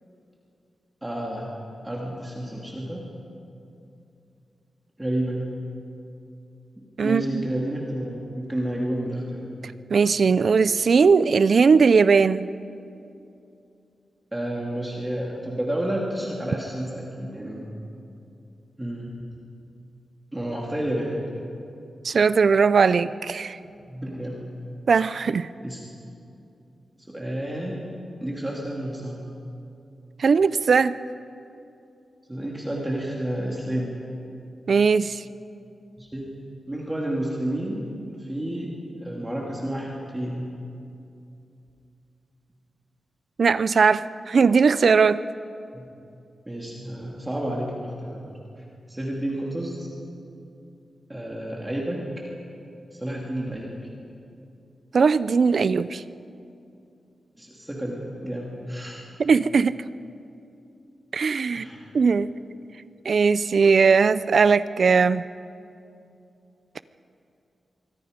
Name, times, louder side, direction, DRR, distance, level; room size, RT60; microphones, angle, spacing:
voice 1, 1.0-1.5 1.8-3.1 5.0-5.5 7.0-9.6 14.3-17.6 18.8-19.2 20.3-21.3 23.9-24.5 25.6-25.8 27.1-27.8 28.2-29.3 32.3-34.0 36.0-36.3 36.7-38.7 39.0-40.6 45.7-45.9 46.5-48.4 48.9-49.9 51.1-52.0 52.9-53.8 57.4-59.0 61.5-61.9, right 1 dB, 10° right, -3 dB, 2.5 m, -30 dB
voice 2, 7.0-7.4 9.9-12.5 22.0-23.6 24.9-25.5 30.2-31.0 34.7-35.2 43.4-45.2 54.9-56.0 59.2-59.8 61.1-61.7 61.9-62.3 63.0-65.3, right 5 dB, 55° right, 15 dB, 0.5 m, -19 dB
25.5 x 24.0 x 5.2 m, 2.7 s
wide cardioid pair, 155°, 0 cm